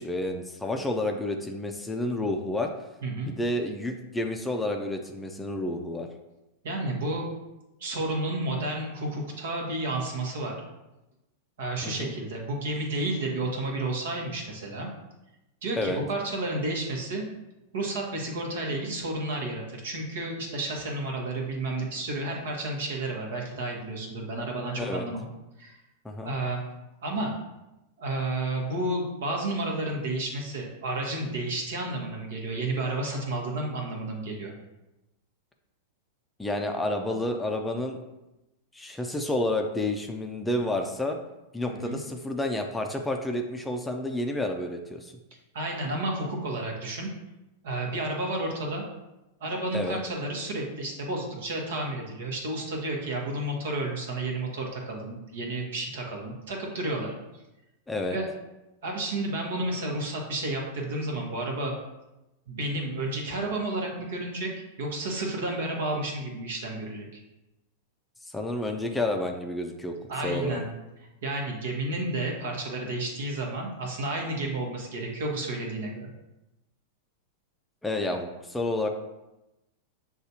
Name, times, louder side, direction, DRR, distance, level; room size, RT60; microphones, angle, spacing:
voice 1, 0.0-2.7 3.3-6.1 11.8-12.1 15.8-16.0 24.8-25.1 26.0-26.3 36.4-38.0 38.7-41.2 41.5-45.1 49.7-50.0 57.9-58.2 68.3-69.9 70.2-70.6 77.8-78.9, left 1 dB, 10° left, 3 dB, 0.4 m, -30 dB
voice 2, 6.6-7.3 7.8-10.6 11.6-14.9 15.6-17.2 17.7-25.3 25.6-25.8 26.2-26.6 27.0-27.3 28.0-34.5 41.7-42.0 45.5-47.1 47.6-48.8 49.4-57.1 58.1-58.3 58.8-61.7 62.5-67.1 70.1-70.7 71.2-76.1, right 2 dB, 70° right, 0 dB, 1.0 m, -31 dB
6.4 x 2.4 x 2.8 m, 0.96 s
hypercardioid pair, 105°, 0 cm